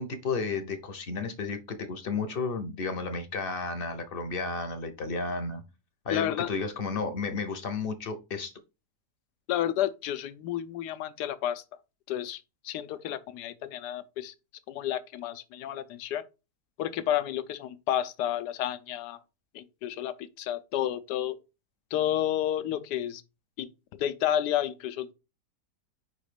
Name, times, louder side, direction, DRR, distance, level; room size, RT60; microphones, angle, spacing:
voice 1, 0.0-5.6 6.0-8.5, left 4 dB, 45° left, 0.7 m, -32 dB
voice 2, 6.1-6.5 9.5-11.6 12.1-14.3 14.7-16.2 16.8-19.2 19.5-21.4 21.9-23.2 23.6-25.1, left 11 dB, 90° left, 1.2 m, -31 dB
5.0 x 4.0 x 5.0 m
omnidirectional pair, 1.7 m